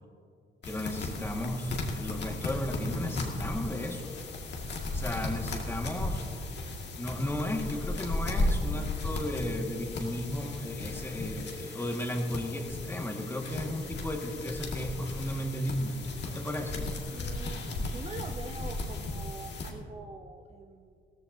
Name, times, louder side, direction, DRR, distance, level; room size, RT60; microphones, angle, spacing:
sound 1, 0.6-19.7, left 2 dB, 60° left, 2.1 m, -35 dB
voice 1, 0.6-4.1 4.9-6.2 7.0-16.8, left 1 dB, 10° left, 1 dB, 1.9 m, -34 dB
voice 2, 16.8-21.0, right 3 dB, 30° right, 4 dB, 0.8 m, -44 dB
16.5 x 14.5 x 2.8 m, 2.4 s
cardioid pair, 90°, 20 cm